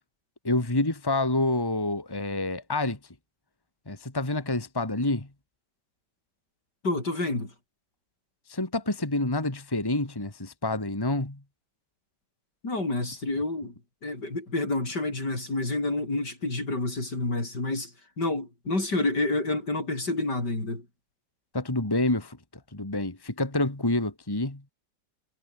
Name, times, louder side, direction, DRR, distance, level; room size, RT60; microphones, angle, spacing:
voice 1, 0.4-3.0 3.9-5.3 8.5-11.4 21.5-22.4 22.7-24.7, left 2 dB, 15° left, 2.3 m, -28 dB
voice 2, 6.8-7.5 12.6-13.7 14.0-17.9 18.2-20.9, left 2 dB, 70° left, 7.5 m, -29 dB
omnidirectional pair, 1.9 m